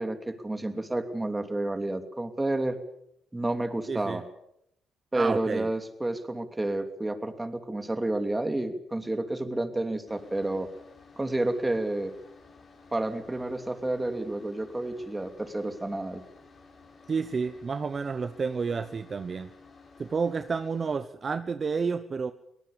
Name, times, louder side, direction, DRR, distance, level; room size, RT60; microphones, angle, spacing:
voice 1, 0.0-2.8 3.3-4.2 5.1-10.7 11.2-12.1 12.9-16.2, right 2 dB, 15° right, 8 dB, 2.8 m, -30 dB
voice 2, 3.9-4.2 5.1-5.7 17.1-19.5 20.0-22.3, right 5 dB, 40° right, 11 dB, 1.0 m, -30 dB
sound 1, 10.1-21.0, left 4 dB, 45° left, 6.9 m, -54 dB
24.0 x 18.5 x 7.1 m, 0.75 s
cardioid pair, 90°, 0 cm